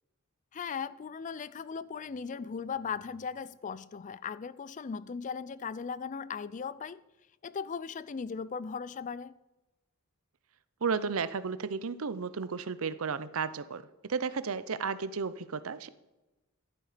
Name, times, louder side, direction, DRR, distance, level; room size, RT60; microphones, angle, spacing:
voice 1, 0.5-7.0 7.4-9.3, left 6 dB, 35° left, 0.4 m, -38 dB
voice 2, 10.8-13.8 14.1-15.9, right 5 dB, 65° right, 0.6 m, -33 dB
12.0 x 10.5 x 5.0 m
head